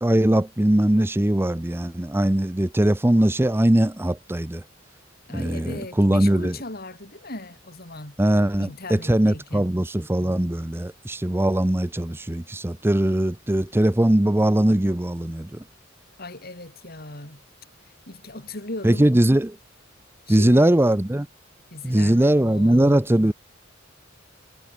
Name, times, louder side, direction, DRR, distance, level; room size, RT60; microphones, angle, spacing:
voice 1, 0.0-4.6 5.3-6.6 8.2-15.6 18.8-19.5 20.3-21.3 21.8-23.3, right 1 dB, 10° right, 0.6 m, -20 dB
voice 2, 5.3-8.2 8.6-9.7 16.2-17.4 17.8-19.1 20.3-20.7 21.7-23.0, left 2 dB, 50° left, 6.0 m, -38 dB
head